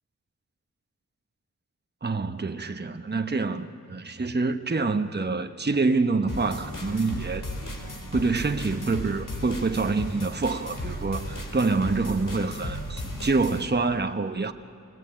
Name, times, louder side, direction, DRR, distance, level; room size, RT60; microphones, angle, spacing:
voice 1, 2.0-7.5 8.1-14.5, right 3 dB, 30° right, 1.1 m, -26 dB
sound 1, 6.3-13.7, left 1 dB, 75° left, 3.9 m, -35 dB
28.5 x 19.0 x 9.0 m
wide cardioid pair, 60°, 32 cm